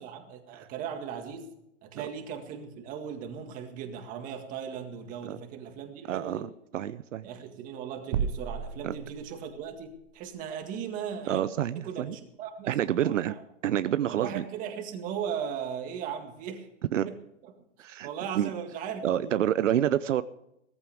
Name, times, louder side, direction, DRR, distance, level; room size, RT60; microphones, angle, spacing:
voice 1, 0.0-1.5 1.8-6.5 7.2-11.5 11.8-13.4 14.1-16.7 17.1-17.2 18.0-19.5, right 7 dB, 20° right, 5 dB, 1.9 m, -38 dB
voice 2, 6.1-7.3 8.8-8.9 11.3-12.1 12.7-13.3 13.6-14.4 16.9-17.1 17.8-18.1 18.4-18.5 19.0-20.2, right 11 dB, 75° right, 14 dB, 0.8 m, -28 dB
sound 1, 8.1-9.7, right 7 dB, 40° right, 0.9 m, -33 dB
18.0 x 14.5 x 3.5 m, 0.82 s
hypercardioid pair, 155°, 38 cm